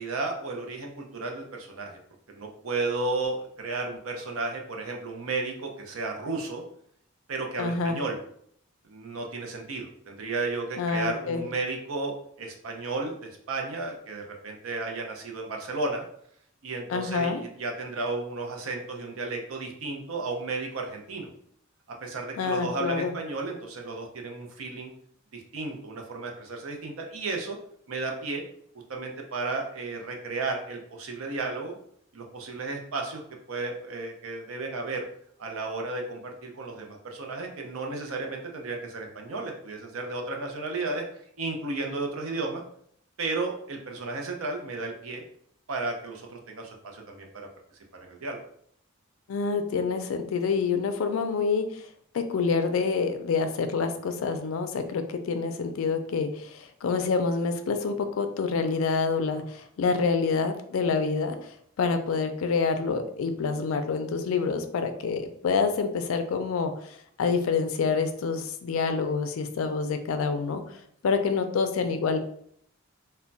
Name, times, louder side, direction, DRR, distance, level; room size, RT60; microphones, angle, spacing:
voice 1, 0.0-2.0 2.3-6.6 7.3-8.2 8.8-16.1 16.6-21.3 22.0-24.9 25.3-27.6 27.9-28.4 28.9-31.8 32.1-33.2 33.5-35.0 35.4-41.0 41.4-42.6 43.2-45.2 45.7-47.5 48.0-48.4, right 3 dB, 85° right, 2 dB, 0.6 m, -33 dB
voice 2, 7.6-8.0 10.8-11.4 16.9-17.4 22.4-23.1 49.3-51.8 52.1-72.2, left 5 dB, 75° left, 8 dB, 0.4 m, -27 dB
2.2 x 2.1 x 3.8 m, 0.66 s
head